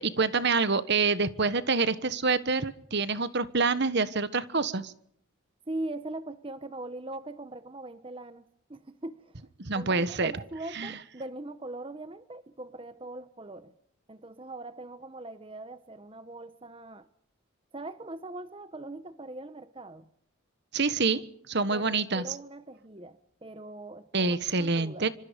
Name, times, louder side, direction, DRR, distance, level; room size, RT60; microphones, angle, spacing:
voice 1, 0.0-4.9 9.6-10.3 10.7-11.0 20.7-22.2 24.1-25.1, right 4 dB, 55° right, 14 dB, 1.3 m, -27 dB
voice 2, 5.7-8.4 8.7-9.4 9.7-13.7 14.1-17.1 17.7-20.1 21.7-25.1, right 2 dB, 25° right, 12 dB, 0.9 m, -41 dB
26.0 x 25.5 x 5.2 m, 0.70 s
head